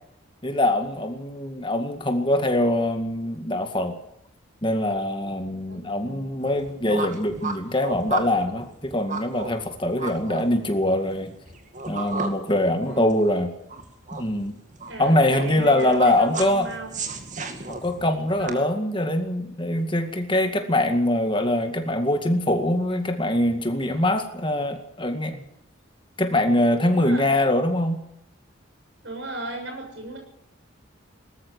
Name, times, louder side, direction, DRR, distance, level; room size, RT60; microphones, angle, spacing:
voice 1, 0.4-4.0 4.6-11.3 11.9-13.5 14.1-14.6 15.0-16.7 17.7-25.4 26.2-28.0, left 1 dB, 25° left, 6 dB, 2.1 m, -23 dB
voice 2, 5.7-6.4 12.9-13.3 14.9-17.0 18.4-18.7 26.9-27.3 29.0-30.2, right 2 dB, 60° right, 3 dB, 7.0 m, -36 dB
sound 1, 6.4-18.5, right 3 dB, 35° right, 2.2 m, -35 dB
19.5 x 13.5 x 9.8 m, 0.77 s
head